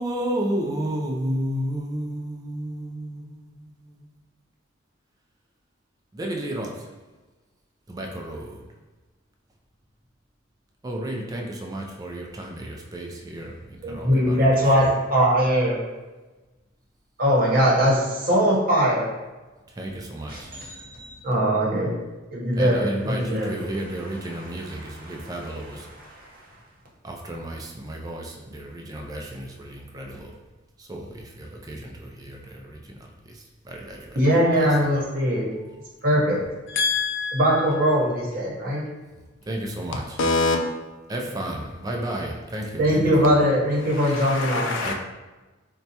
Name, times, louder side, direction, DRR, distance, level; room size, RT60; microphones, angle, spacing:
voice 1, 0.0-3.9 6.1-6.9 7.9-8.6 10.8-13.6 13.9-14.4 14.8-14.9 19.8-20.5 22.6-25.9 27.0-30.3 30.9-32.8 33.7-34.2 39.5-40.2 41.1-43.3 44.8-44.9, right 1 dB, 20° right, 0.3 m, -32 dB
voice 2, 13.8-15.8 17.2-19.1 20.3-21.9 22.3-26.2 34.1-35.5 36.0-36.4 37.3-38.8 41.3-41.5 42.8-44.7, equal, 45° right, 0.9 m, -22 dB
voice 3, 36.7-37.6 40.2-40.6 44.0-44.9, left 4 dB, 65° left, 0.4 m, -25 dB
4.1 x 2.2 x 2.7 m
head